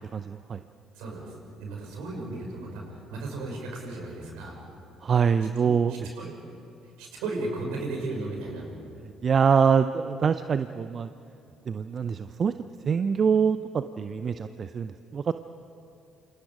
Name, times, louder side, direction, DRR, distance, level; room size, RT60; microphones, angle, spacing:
voice 1, 0.1-0.6 5.0-6.3 9.2-11.1 11.7-12.5 12.8-15.3, right 6 dB, 45° right, 11 dB, 0.7 m, -25 dB
voice 2, 0.9-4.5 5.6-6.4 6.8-8.6, right 2 dB, 70° right, 0 dB, 6.0 m, -35 dB
28.5 x 27.5 x 5.0 m, 2.7 s
figure-of-eight pair, 50°, 0 cm